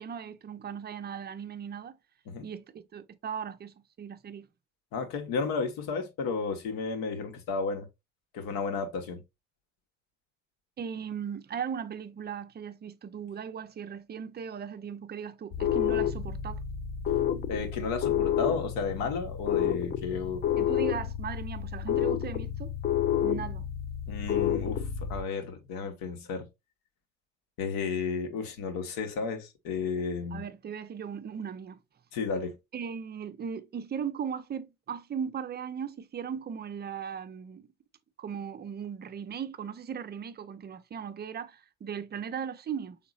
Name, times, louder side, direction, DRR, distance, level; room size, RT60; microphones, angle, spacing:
voice 1, 0.0-2.0 2.4-4.5 10.8-16.6 20.0-20.1 20.6-22.7 23.2-23.7 30.3-31.8 32.7-37.7 38.2-43.0, right 7 dB, 25° right, 0.6 m, -38 dB
voice 2, 4.9-7.9 8.3-9.2 17.5-20.4 24.1-26.5 27.6-30.4 32.1-32.6, left 5 dB, 60° left, 1.4 m, -33 dB
sound 1, 15.5-25.2, left 10 dB, 25° left, 0.5 m, -30 dB
5.7 x 3.9 x 2.4 m
hypercardioid pair, 65°, 39 cm